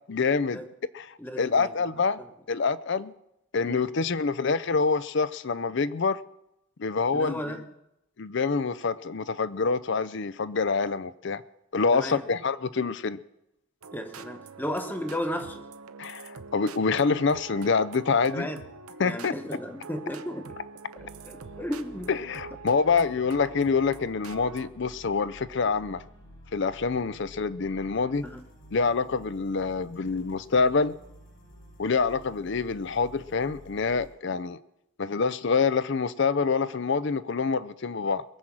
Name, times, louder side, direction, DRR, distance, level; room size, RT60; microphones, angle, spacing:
voice 1, 0.1-0.6 0.9-1.1 1.4-2.2 2.5-3.1 3.5-6.2 6.8-7.4 8.2-11.4 11.7-13.2 16.0-18.5 19.0-19.3 22.1-26.0 26.5-28.2 28.7-30.9 31.8-34.6 35.0-38.2, left 4 dB, 55° left, 16 dB, 0.5 m, -26 dB
voice 2, 1.2-1.8 3.6-3.9 7.1-7.6 11.9-12.2 13.9-15.7 18.3-18.7 19.0-20.5 21.0-22.1 28.2-28.4, equal, 10° left, 6 dB, 1.1 m, -34 dB
sound 1, 13.8-24.7, right 5 dB, 85° right, 0.8 m, -45 dB
sound 2, 21.0-34.1, equal, 75° left, 7.3 m, -51 dB
22.0 x 7.7 x 6.1 m, 0.84 s
head